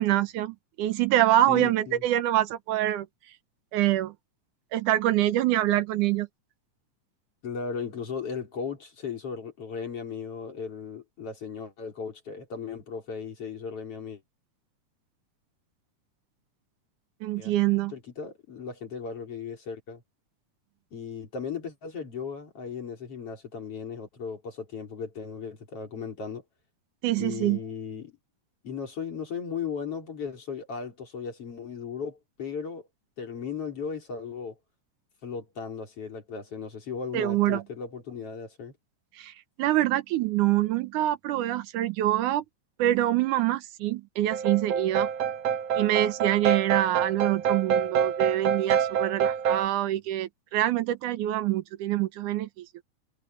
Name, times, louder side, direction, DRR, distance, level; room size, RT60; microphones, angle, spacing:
voice 1, 0.0-3.1 3.7-4.1 4.7-6.3 17.2-17.9 27.0-27.6 37.1-37.6 39.2-42.4 42.8-45.1 45.7-52.7, right 14 dB, 80° right, 2.4 m, -25 dB
voice 2, 1.5-2.0 7.4-14.2 17.4-17.5 17.9-20.0 20.9-26.4 27.2-28.2 28.6-32.9 33.2-34.6 35.2-38.7, left 6 dB, 50° left, 4.7 m, -36 dB
sound 1, 44.3-49.6, right 8 dB, 60° right, 2.3 m, -26 dB
omnidirectional pair, 3.5 m